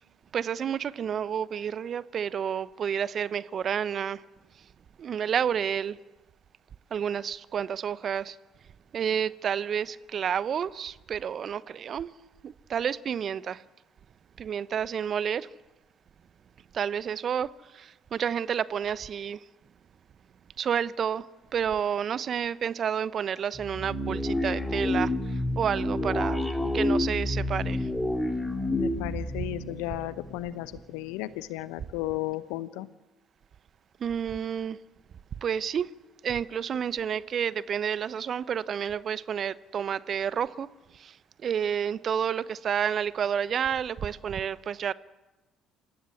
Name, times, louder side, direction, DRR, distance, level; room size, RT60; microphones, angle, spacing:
voice 1, 0.3-4.2 5.0-6.0 6.9-8.4 8.9-12.1 12.4-13.6 14.4-15.5 16.7-17.5 17.7-19.4 20.6-21.2 21.5-25.1 25.6-27.8 34.0-34.8 35.4-35.9 36.2-40.7 41.0-41.1 41.4-44.9, right 8 dB, 50° right, 0.8 m, -30 dB
sound 1, 23.5-30.7, left 1 dB, 10° left, 3.5 m, -29 dB
voice 2, 28.7-32.9, left 15 dB, 70° left, 0.9 m, -34 dB
27.5 x 15.5 x 8.4 m
hypercardioid pair, 50°, 0 cm